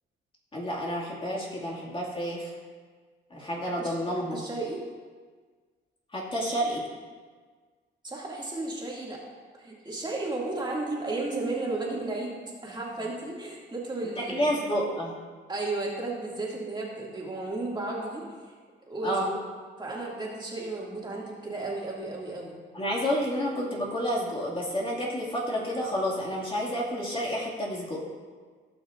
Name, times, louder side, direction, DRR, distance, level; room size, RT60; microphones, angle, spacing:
voice 1, 0.5-2.5 3.3-4.4 6.1-6.8 14.2-15.2 19.0-19.3 22.7-28.0, equal, 25° left, -4 dB, 2.2 m, -30 dB
voice 2, 4.3-4.8 8.0-9.2 9.6-14.5 15.5-18.3 18.9-19.4 19.8-22.6, right 2 dB, 20° right, -4 dB, 2.3 m, -33 dB
17.0 x 6.0 x 2.6 m, 1.5 s
cardioid pair, 90°, 20 cm